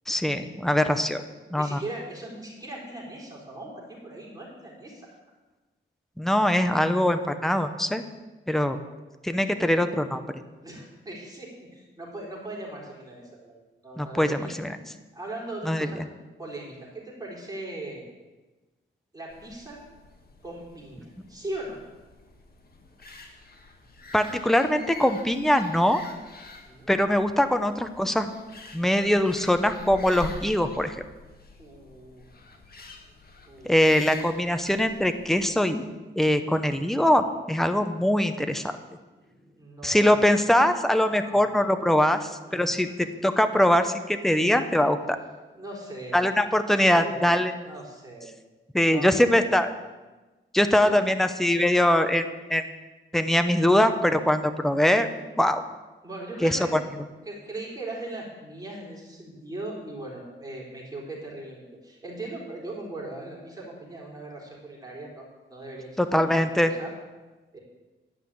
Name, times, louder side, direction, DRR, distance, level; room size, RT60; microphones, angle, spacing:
voice 1, 0.1-1.2 1.5-1.8 6.2-8.0 8.5-8.8 9.2-10.2 14.0-14.8 15.6-16.0 24.1-26.0 26.9-28.3 28.7-31.0 33.6-35.9 36.2-38.7 39.8-45.2 46.1-47.5 48.7-49.7 50.5-52.6 53.1-55.1 55.4-55.6 56.4-56.8 66.0-66.7, left 1 dB, ahead, 8 dB, 0.7 m, -22 dB
voice 2, 1.5-5.1 10.6-14.5 15.1-16.0 16.4-18.1 19.1-19.8 20.4-21.8 26.6-26.9 31.6-32.2 33.5-33.8 39.2-40.2 41.2-41.6 42.4-43.2 45.5-46.3 46.6-47.4 47.6-48.3 48.8-49.6 50.8-51.0 56.0-56.7 57.2-66.9 67.5-67.6, right 2 dB, 20° right, -4 dB, 3.8 m, -39 dB
sound 1, 19.3-35.5, left 3 dB, 45° left, 1.6 m, -46 dB
11.5 x 5.8 x 8.4 m, 1.2 s
wide cardioid pair, 120°, 21 cm